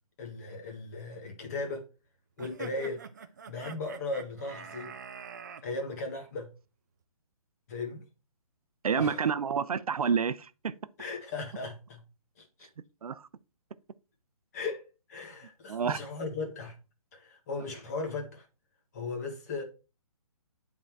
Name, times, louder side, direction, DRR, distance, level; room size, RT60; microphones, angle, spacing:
voice 1, 0.2-1.8 2.4-3.0 3.5-4.9 5.6-6.5 7.7-8.0 9.0-9.3 11.0-12.0 12.4-12.7 14.5-16.7 17.1-18.4 18.9-19.6, left 3 dB, 25° left, 1.4 m, -37 dB
sound 1, 2.4-5.6, right 6 dB, 30° right, 0.5 m, -45 dB
voice 2, 8.8-10.7 13.0-13.2 15.7-16.0, right 6 dB, 75° right, 0.6 m, -28 dB
8.7 x 3.9 x 4.5 m
hypercardioid pair, 170°, 19 cm